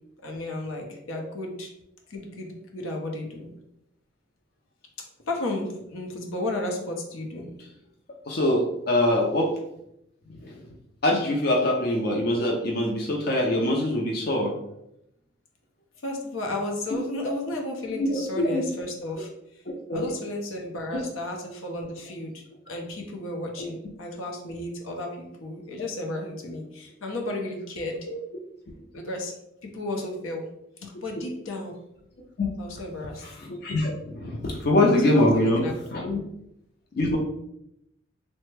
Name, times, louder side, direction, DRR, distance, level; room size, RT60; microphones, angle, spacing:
voice 1, 0.2-1.7 2.1-3.5 5.0-7.5 16.0-19.6 19.9-28.0 28.9-29.3 29.6-30.4 30.8-31.8 32.6-33.2 35.0-35.7 36.1-36.2, left 1 dB, 85° left, 1 dB, 0.7 m, -33 dB
voice 2, 8.3-9.5 10.4-10.5 11.0-14.5 18.0-18.6 19.9-20.1 23.6-23.7 32.4-32.5 33.5-35.6 35.9-36.2 37.0-37.2, left 1 dB, 50° left, 0 dB, 0.4 m, -23 dB
3.2 x 2.1 x 3.2 m, 0.79 s
head